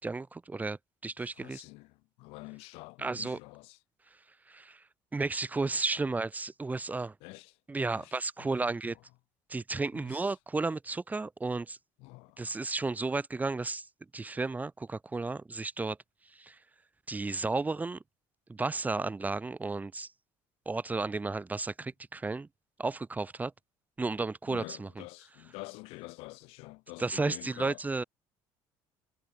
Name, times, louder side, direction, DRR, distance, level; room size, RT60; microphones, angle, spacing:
voice 1, 0.0-1.6 3.0-3.4 4.5-4.8 5.1-7.1 7.7-9.0 9.5-11.8 12.4-13.9 14.1-16.0 16.3-16.6 17.1-18.0 18.5-20.1 20.7-22.5 22.8-23.5 24.0-24.9 27.0-28.0, right 3 dB, 15° right, 5.5 m, -33 dB
voice 2, 1.4-3.8 7.2-7.6 7.9-9.0 9.9-10.2 12.0-12.6 24.5-27.8, left 25 dB, 85° left, 5.9 m, -47 dB
cardioid pair, 120°, 10 cm